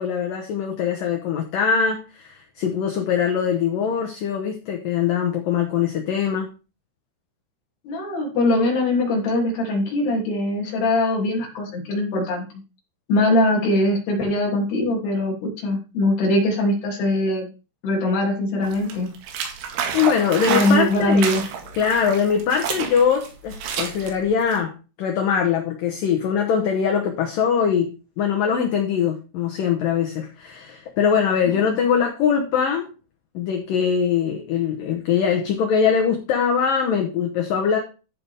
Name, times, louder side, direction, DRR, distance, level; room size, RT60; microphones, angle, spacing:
voice 1, 0.0-6.5 19.9-21.3 21.8-24.7 25.0-32.9 33.3-37.8, left 7 dB, 80° left, 2 dB, 2.0 m, -22 dB
voice 2, 7.8-12.5 13.1-17.5 17.8-19.1 20.5-21.5 31.5-31.7, left 1 dB, 60° left, -1 dB, 4.7 m, -21 dB
sound 1, 18.6-24.6, right 7 dB, 85° right, 4.3 m, -29 dB
14.5 x 5.8 x 3.5 m, 0.33 s
omnidirectional pair, 5.6 m